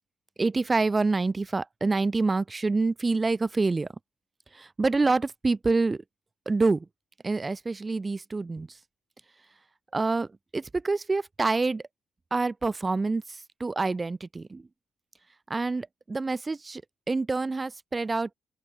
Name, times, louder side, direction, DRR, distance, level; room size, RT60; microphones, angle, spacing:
voice 1, 0.4-3.9 4.6-6.0 6.4-6.8 7.2-8.7 9.9-10.3 10.5-11.8 12.3-13.2 13.6-14.6 15.5-16.8 17.1-18.3, right 3 dB, 25° right, 1.7 m, -26 dB
open air
cardioid pair, 90°, 0 cm